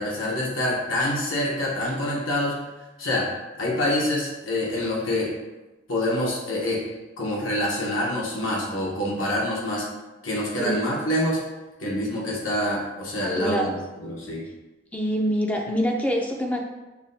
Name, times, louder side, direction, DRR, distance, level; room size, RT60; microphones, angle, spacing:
voice 1, 0.0-2.6 3.0-3.3 3.6-5.3 5.9-6.8 7.2-9.8 10.2-11.4 11.8-14.5, left 1 dB, 85° left, -4 dB, 1.0 m, -26 dB
voice 2, 13.2-13.7 14.9-16.6, equal, 5° left, 1 dB, 0.3 m, -25 dB
5.5 x 2.2 x 2.6 m, 1.1 s
head